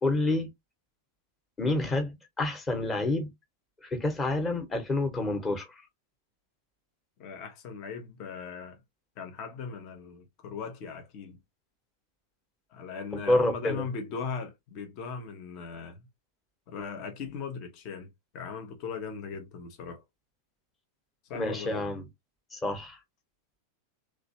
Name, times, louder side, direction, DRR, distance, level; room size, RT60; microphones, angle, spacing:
voice 1, 0.0-0.5 1.6-3.3 3.8-5.8 13.3-13.8 21.3-22.0 22.5-23.0, left 2 dB, 20° left, 1.2 m, -28 dB
voice 2, 7.2-8.8 9.2-11.4 12.7-16.1 16.7-20.0 21.3-21.8, left 5 dB, 40° left, 0.9 m, -39 dB
3.2 x 3.1 x 2.8 m
figure-of-eight pair, 90°, 0 cm